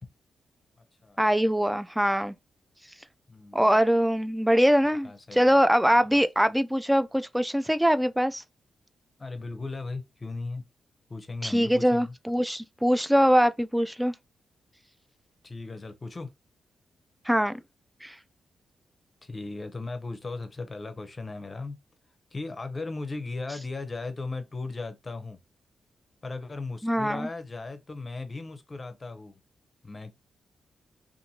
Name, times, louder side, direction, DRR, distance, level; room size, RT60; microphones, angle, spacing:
voice 1, 1.2-2.4 3.5-8.4 11.4-14.1 17.3-17.6 18.0-18.2 26.8-27.3, equal, 5° right, 0.4 m, -23 dB
voice 2, 3.3-3.6 5.0-5.4 5.9-6.2 9.2-10.6 11.1-12.1 15.4-16.3 19.2-21.8 22.3-25.4 26.2-29.4 29.8-30.1, left 3 dB, 35° left, 0.7 m, -37 dB
2.6 x 2.5 x 2.8 m
supercardioid pair, 45°, 0 cm